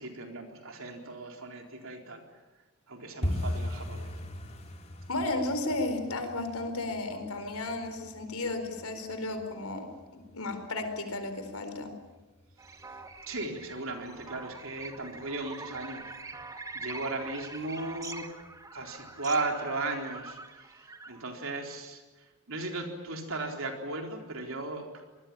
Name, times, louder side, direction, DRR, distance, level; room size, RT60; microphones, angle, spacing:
voice 1, 0.0-2.2 2.9-4.1 13.3-16.1 16.7-18.2 18.7-20.4 21.1-22.0 22.5-24.9, right 2 dB, 65° right, 3 dB, 4.1 m, -36 dB
sound 1, 3.2-13.9 14.2-14.9 15.1-15.5 15.7-16.1 16.4-16.5 17.0-17.5 17.9-18.0 18.5-18.6, left 1 dB, 30° left, 3.0 m, -40 dB
voice 2, 5.1-9.9 10.1-11.9, left 2 dB, 80° left, 7 dB, 4.3 m, -33 dB
sound 2, 12.6-21.3, right 3 dB, 15° right, 1.4 m, -44 dB
25.5 x 20.5 x 8.8 m, 1.2 s
head